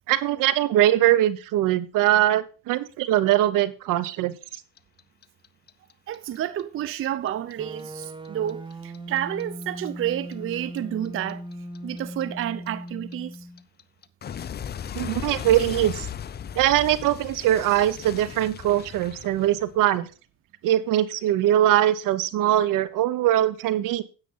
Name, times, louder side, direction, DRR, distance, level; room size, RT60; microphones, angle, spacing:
voice 1, 0.1-4.3 14.9-16.1 16.6-20.1 20.6-24.0, right 13 dB, 70° right, 1.0 m, -22 dB
Clock, 4.5-7.5 7.8-10.8 11.1-19.9, left 8 dB, 30° left, 0.5 m, -37 dB
voice 2, 6.1-11.4 11.8-13.5, right 11 dB, 40° right, 0.5 m, -30 dB
sound 1, 7.6-13.6, equal, 15° right, 0.8 m, -38 dB
9.8 x 8.2 x 3.9 m
supercardioid pair, 95°, 34 cm